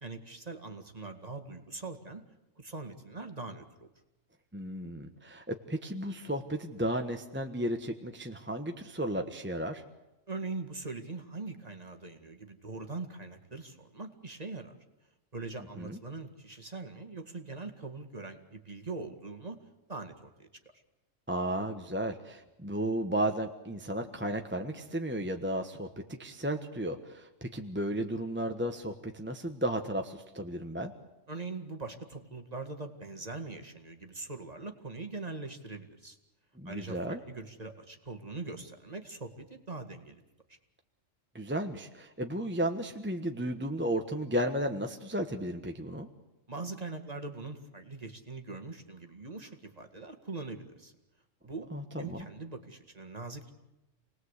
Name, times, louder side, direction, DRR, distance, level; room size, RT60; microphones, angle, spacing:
voice 1, 0.0-2.2 2.6-3.9 10.3-14.7 15.3-19.6 19.9-20.5 31.3-36.2 36.7-40.2 40.5-40.6 46.5-50.9 51.4-51.7 52.0-53.5, right 3 dB, 30° right, 5 dB, 2.1 m, -42 dB
voice 2, 4.5-9.8 15.8-16.0 21.3-30.9 36.5-37.2 41.3-46.1 51.7-52.3, right 1 dB, 10° right, 4 dB, 1.2 m, -34 dB
28.5 x 20.0 x 8.2 m, 0.98 s
omnidirectional pair, 1.3 m